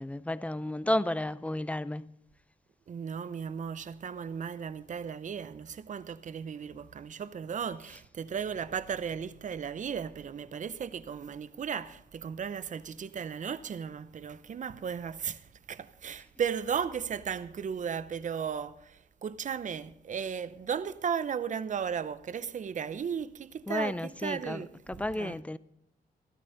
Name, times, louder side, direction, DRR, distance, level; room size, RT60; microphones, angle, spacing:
voice 1, 0.0-2.1 23.7-24.6 24.9-25.6, left 1 dB, 10° left, 0.5 m, -32 dB
voice 2, 2.9-25.4, right 7 dB, 50° right, 0.7 m, -35 dB
15.0 x 13.0 x 3.9 m
cardioid pair, 95°, 16 cm